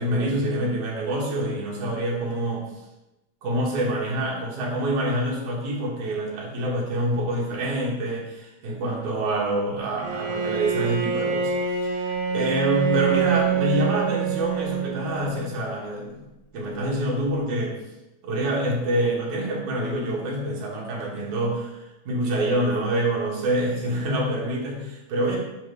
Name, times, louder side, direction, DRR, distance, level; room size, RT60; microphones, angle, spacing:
voice 1, 0.0-2.7 3.4-16.3 16.5-17.8 18.2-25.4, right 1 dB, 75° right, -3 dB, 2.9 m, -26 dB
Bowed string instrument, 10.0-15.4, right 7 dB, 45° right, 2.8 m, -26 dB
8.9 x 3.3 x 4.6 m, 0.97 s
omnidirectional pair, 3.6 m